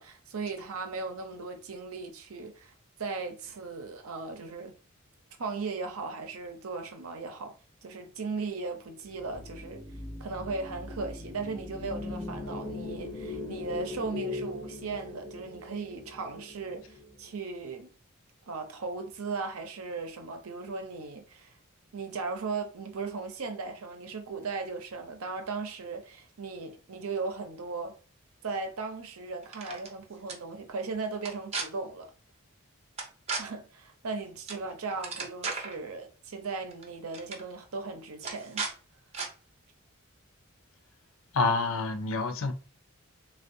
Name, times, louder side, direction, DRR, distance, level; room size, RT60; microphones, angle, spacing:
voice 1, 0.0-4.8 5.4-7.6 7.8-9.8 10.2-17.9 18.5-21.5 21.9-27.9 28.4-32.1 33.4-38.7, right 4 dB, 85° right, 0.6 m, -37 dB
sound 1, 9.1-17.4, left 3 dB, 15° left, 0.5 m, -40 dB
sound 2, 29.4-29.9 30.3-30.4 31.2-31.6 33.0-33.4 34.5-34.6 34.9-35.7 36.7-36.8 37.1-37.4 38.2-38.7 39.1-39.3, right 4 dB, 30° right, 0.6 m, -35 dB
voice 2, 41.3-42.5, left 3 dB, 65° left, 0.5 m, -27 dB
3.4 x 2.3 x 2.6 m
head